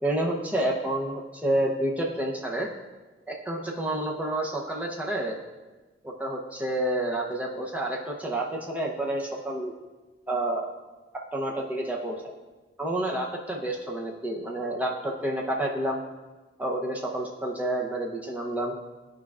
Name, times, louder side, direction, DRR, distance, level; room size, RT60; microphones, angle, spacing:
voice 1, 0.0-2.7 3.3-5.3 6.0-9.7 10.3-10.7 11.3-12.2 12.8-16.0 16.6-18.7, right 1 dB, 10° right, -1 dB, 0.7 m, -29 dB
12.5 x 4.6 x 2.4 m, 1.2 s
head